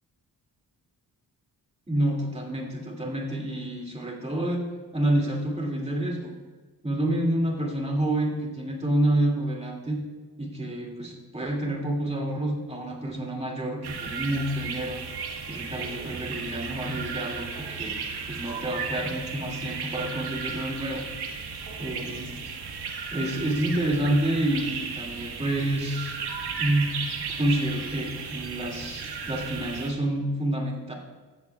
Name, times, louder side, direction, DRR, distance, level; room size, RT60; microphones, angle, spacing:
voice 1, 1.9-4.6 4.9-6.3 6.8-10.0 10.4-18.0 18.3-21.4 21.8-22.3 23.1-26.2 26.6-27.0 27.4-30.9, right 1 dB, 15° right, -1 dB, 2.4 m, -28 dB
sound 1, 13.8-29.9, right 5 dB, 85° right, 1.6 m, -35 dB
15.5 x 14.0 x 2.4 m, 1.3 s
wide cardioid pair, 135°, 38 cm